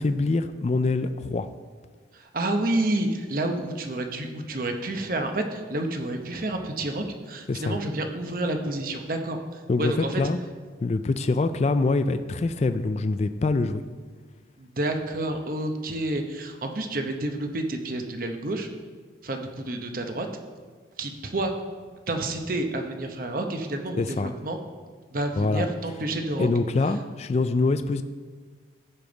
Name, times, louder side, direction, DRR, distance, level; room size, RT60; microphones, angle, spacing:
voice 1, 0.0-1.5 7.5-7.8 9.7-10.4 10.8-13.8 24.0-24.3 25.4-25.7 26.4-28.0, left 3 dB, 35° left, 10 dB, 0.3 m, -24 dB
voice 2, 2.1-10.2 14.6-18.7 19.2-20.3 21.0-21.5 22.1-24.6 25.1-26.5, right 1 dB, 50° right, 5 dB, 0.9 m, -29 dB
15.5 x 5.2 x 3.9 m, 1.6 s
head